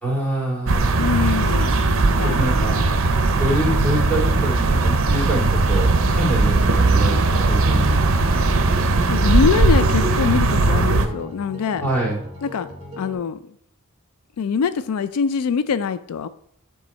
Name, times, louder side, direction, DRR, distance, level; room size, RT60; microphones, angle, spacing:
voice 1, 0.0-1.0 2.2-2.8 3.3-8.2 11.8-12.2, right 1 dB, 10° left, -5 dB, 2.6 m, -26 dB
sound 1, 0.6-11.1, right 3 dB, 60° right, 0.6 m, -18 dB
sound 2, 0.8-4.2, right 3 dB, 25° left, 3.4 m, -36 dB
voice 2, 1.0-1.8 2.2-2.4 9.1-11.8 12.4-12.7 13.0-13.4 14.4-16.3, left 6 dB, 85° left, 14 dB, 0.4 m, -23 dB
sound 3, 5.8-13.1, equal, 30° right, 2.3 m, -37 dB
9.5 x 3.7 x 4.2 m, 0.64 s
head